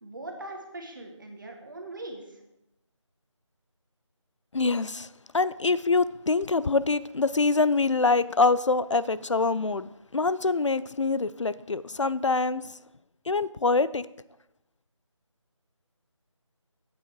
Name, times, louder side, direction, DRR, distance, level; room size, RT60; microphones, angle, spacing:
voice 1, 0.0-2.4, right 2 dB, 40° right, 3 dB, 1.6 m, -41 dB
voice 2, 4.5-5.1 5.3-12.6 13.3-14.1, left 3 dB, 65° left, 17 dB, 0.4 m, -25 dB
9.7 x 8.4 x 4.6 m, 0.89 s
figure-of-eight pair, 165°, 17 cm